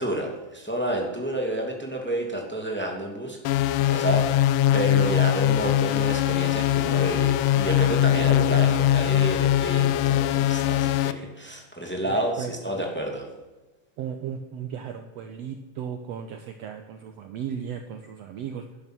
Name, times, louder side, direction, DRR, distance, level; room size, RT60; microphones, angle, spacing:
voice 1, 0.0-3.4 3.9-4.5 4.7-13.3, right 1 dB, 5° left, 1 dB, 1.5 m, -30 dB
sound 1, 3.5-11.1, left 12 dB, 80° left, 2.1 m, -21 dB
voice 2, 11.9-12.9 14.0-18.7, right 8 dB, 85° right, 6 dB, 1.4 m, -36 dB
12.5 x 11.0 x 6.1 m, 1.1 s
omnidirectional pair, 4.1 m